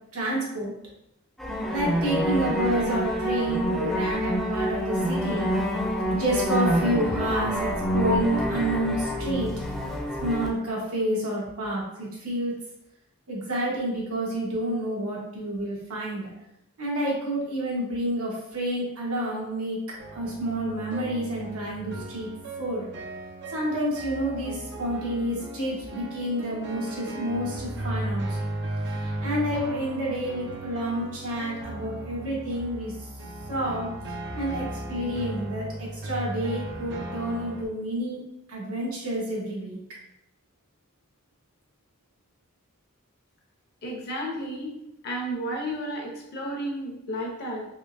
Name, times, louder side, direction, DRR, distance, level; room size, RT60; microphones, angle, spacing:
voice 1, 0.1-0.7 1.7-5.5 6.1-9.5 10.2-12.5 13.3-16.3 16.8-19.8 20.1-22.3 22.6-22.9 23.5-28.5 29.0-33.1 33.5-33.9 34.3-38.2 38.5-39.8, right 1 dB, 85° right, -4 dB, 1.2 m, -29 dB
sound 1, 1.4-10.5, equal, ahead, 0.5 m, -27 dB
sound 2, 20.0-37.6, right 1 dB, 55° right, 0.5 m, -36 dB
voice 2, 43.8-44.7 45.0-47.6, equal, 50° left, -1 dB, 0.8 m, -32 dB
3.5 x 3.1 x 2.6 m, 0.84 s
head